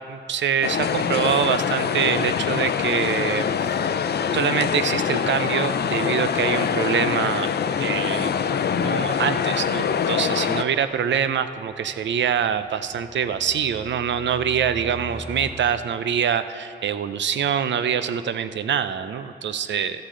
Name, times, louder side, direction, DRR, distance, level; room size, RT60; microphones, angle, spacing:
voice 1, 0.1-3.8 4.3-7.5 7.8-8.3 8.7-20.0, right 8 dB, 85° right, 12 dB, 0.5 m, -25 dB
sound 1, 0.6-10.6, left 7 dB, 65° left, 0.5 m, -24 dB
sound 2, 10.1-15.5, left 1 dB, 35° left, 1.7 m, -45 dB
15.0 x 11.5 x 3.8 m, 2.5 s
wide cardioid pair, 110°, 18 cm